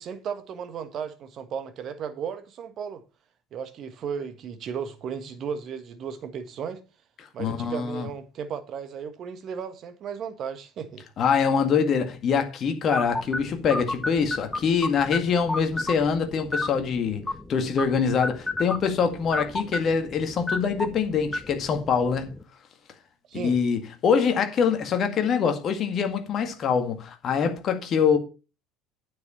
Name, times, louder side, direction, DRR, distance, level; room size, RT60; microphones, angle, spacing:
voice 1, 0.0-3.0 3.5-6.8 7.3-11.1 23.3-23.6, right 7 dB, 45° right, 1.6 m, -35 dB
voice 2, 7.4-8.1 11.2-22.3 23.3-28.2, left 6 dB, 40° left, 1.9 m, -24 dB
sound 1, 12.9-22.4, left 2 dB, 10° left, 1.0 m, -33 dB
9.3 x 7.3 x 4.3 m
figure-of-eight pair, 65°, 0 cm